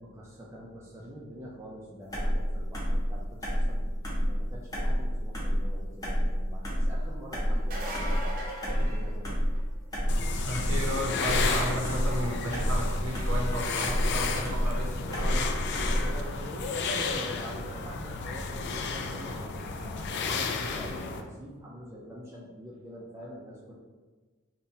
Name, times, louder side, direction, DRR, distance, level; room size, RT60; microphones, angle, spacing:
voice 1, 0.0-3.9 4.2-9.4 14.7-15.5 15.9-23.7, equal, 15° right, -5 dB, 0.4 m, -44 dB
sound 1, 2.1-16.3, equal, 15° left, 0.7 m, -29 dB
sound 2, 7.5-9.8 15.3-15.4 17.2-17.3, right 1 dB, 45° right, 0.8 m, -39 dB
sound 3, 10.1-21.2, left 4 dB, 55° left, 0.3 m, -33 dB
voice 2, 10.4-15.4, equal, 75° right, -1 dB, 0.8 m, -33 dB
5.3 x 2.2 x 2.7 m, 1.3 s
head